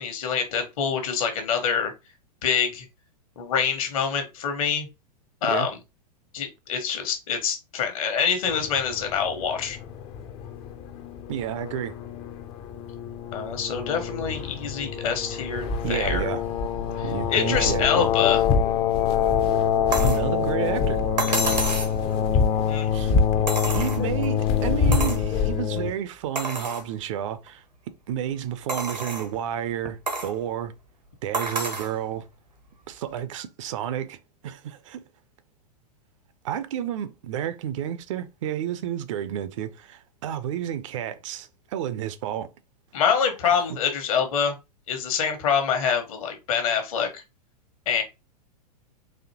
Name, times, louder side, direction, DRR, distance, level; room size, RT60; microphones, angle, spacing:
voice 1, 0.0-1.9 2.4-2.9 3.4-4.9 5.4-5.8 6.3-9.8 13.3-16.2 17.0-18.4 22.7-22.9 42.9-44.5 44.9-47.2 47.9-48.0, left 7 dB, 55° left, 1.2 m, -25 dB
sound 1, 8.5-25.9, left 7 dB, 30° left, 0.5 m, -25 dB
voice 2, 11.3-11.9 15.8-16.4 17.0-18.1 20.0-21.0 22.9-23.2 23.7-27.6 28.1-30.7 31.2-32.3 32.9-34.2 34.4-35.1 36.4-42.5 43.4-43.6, right 10 dB, 50° right, 0.5 m, -31 dB
sound 2, 19.9-20.3 21.2-22.0 23.5-24.3 24.9-25.3 25.8-25.9 26.4-26.9 27.5-27.6 28.7-29.3 30.1-30.3 31.3-31.9 33.2-33.3, right 2 dB, 90° right, 1.1 m, -29 dB
4.1 x 2.6 x 2.8 m
figure-of-eight pair, 100°, 21 cm